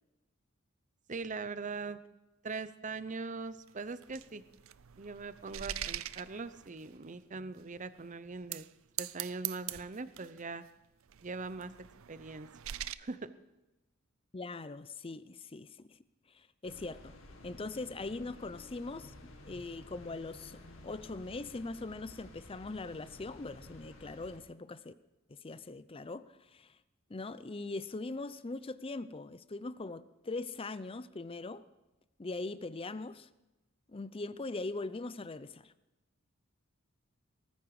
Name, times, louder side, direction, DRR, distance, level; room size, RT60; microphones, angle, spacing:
voice 1, 1.1-2.0 2.4-4.4 5.0-8.7 9.0-10.6 11.2-11.7 12.1-12.5 13.0-13.3, right 4 dB, 40° right, 0.7 m, -41 dB
sound 1, 3.7-7.0 7.6-7.7 8.4-8.7 9.0-10.4 11.1-12.9, right 12 dB, 80° right, 0.5 m, -42 dB
voice 2, 14.3-16.0 16.3-17.1 17.4-19.1 19.4-24.9 25.3-26.8 27.1-31.6 32.2-33.3 33.9-35.7, left 3 dB, 25° left, 0.6 m, -41 dB
sound 2, 16.6-24.4, left 1 dB, 75° left, 2.3 m, -53 dB
19.5 x 13.5 x 4.9 m
head